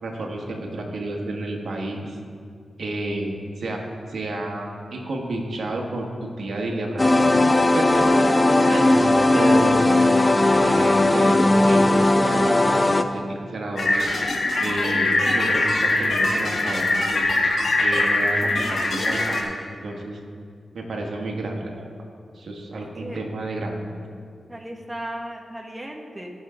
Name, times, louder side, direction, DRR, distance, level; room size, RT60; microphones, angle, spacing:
voice 1, 0.0-2.2 2.8-3.8 4.1-8.3 8.7-9.0 9.3-9.8 10.6-11.4 11.6-14.0 14.6-17.3 17.8-19.5 19.8-20.2 20.7-21.8 22.3-23.8, right 2 dB, 75° right, 0 dB, 1.6 m, -30 dB
sound 1, 7.0-13.0, left 2 dB, 30° left, 0.6 m, -17 dB
voice 2, 7.9-9.6 23.0-23.2 24.5-26.3, right 1 dB, 20° right, 1 dB, 1.7 m, -36 dB
sound 2, 13.8-19.4, left 2 dB, 65° left, 1.5 m, -22 dB
17.5 x 6.4 x 3.8 m, 2.2 s
cardioid pair, 50°, 0 cm